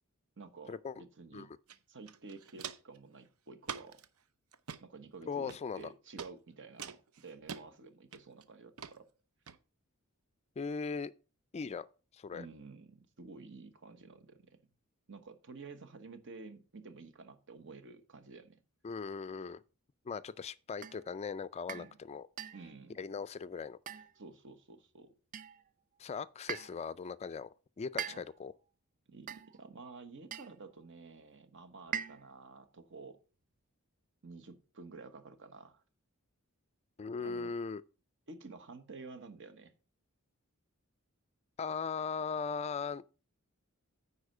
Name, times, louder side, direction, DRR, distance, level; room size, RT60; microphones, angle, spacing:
voice 1, 0.4-1.5 1.9-4.0 4.8-9.1 12.3-14.6 15.1-18.6 21.7-22.0 22.5-23.1 24.1-25.1 28.0-28.2 29.1-33.2 34.2-35.8 37.0-37.5 38.3-39.7, right 3 dB, 60° right, 1.2 m, -51 dB
Walk footsteps, 1.7-1.8 2.1-3.0 3.6-4.1 4.5-4.8 5.5-5.8 6.2-6.3 6.8-7.6 8.1-8.4 8.8-8.9 9.5-9.6, right 7 dB, 75° right, 0.7 m, -44 dB
voice 2, 5.3-5.9 10.6-11.1 11.5-11.9 12.1-12.5 18.8-19.6 20.1-22.3 23.0-24.0 26.0-27.5 27.8-28.5 37.0-37.8 41.6-43.0, left 5 dB, 30° left, 0.3 m, -39 dB
sound 1, 20.8-21.1 21.7-21.9 22.4-22.7 23.9-24.3 25.3-25.7 26.5-26.9 28.0-28.5 29.3-29.7 30.3-30.6 31.9-32.4, right 7 dB, 35° right, 0.4 m, -42 dB
9.7 x 4.3 x 6.5 m
head